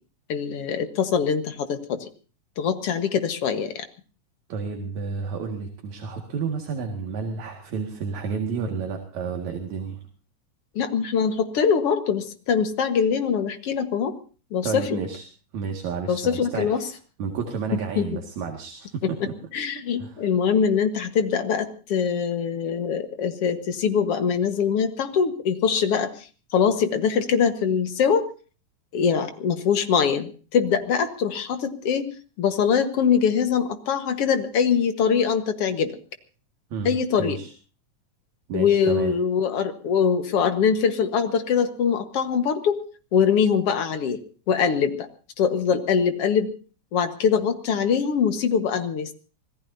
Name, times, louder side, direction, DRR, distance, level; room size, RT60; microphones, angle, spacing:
voice 1, 0.3-2.1 2.6-3.9 10.8-14.1 14.5-15.0 16.1-16.8 18.0-18.1 19.0-19.3 19.5-26.3 26.5-28.3 28.9-32.1 32.4-36.0 36.9-37.4 38.5-42.8 43.1-45.1 45.4-46.5 46.9-49.1, left 7 dB, 55° left, 9 dB, 2.2 m, -23 dB
voice 2, 4.5-10.0 14.6-15.2 15.5-16.9 17.2-19.3 20.0-20.3 36.7-37.5 38.5-39.1, right 5 dB, 70° right, 3 dB, 3.3 m, -31 dB
26.0 x 18.0 x 2.7 m, 0.38 s
omnidirectional pair, 3.5 m